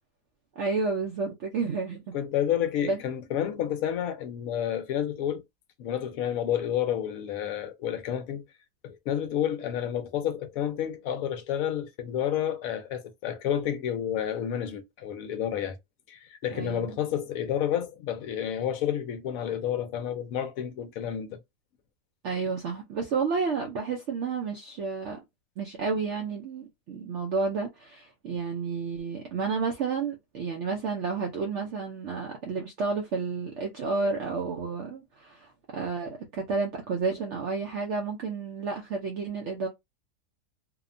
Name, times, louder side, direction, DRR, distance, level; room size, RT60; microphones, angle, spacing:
voice 1, 0.6-2.1 2.8-3.0 16.5-17.0 22.2-25.2 25.6-39.7, right 4 dB, 65° right, 0.7 m, -31 dB
voice 2, 2.1-5.4 5.8-8.4 8.8-15.8 16.1-21.4, left 10 dB, 70° left, 1.0 m, -30 dB
2.8 x 2.1 x 2.5 m
omnidirectional pair, 1.6 m